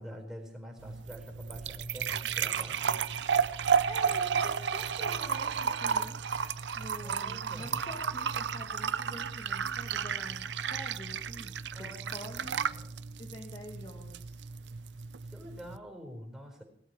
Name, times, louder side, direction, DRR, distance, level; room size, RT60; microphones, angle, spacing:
voice 1, 0.0-3.0 7.0-7.9 11.7-13.1 15.3-16.6, equal, 5° right, 1 dB, 4.3 m, -46 dB
sound 1, 0.8-15.8, right 7 dB, 85° right, 0.6 m, -33 dB
voice 2, 3.8-6.4 6.8-12.6 13.2-14.4, left 1 dB, 30° left, 1 dB, 1.8 m, -47 dB
19.5 x 13.0 x 4.8 m, 0.65 s
head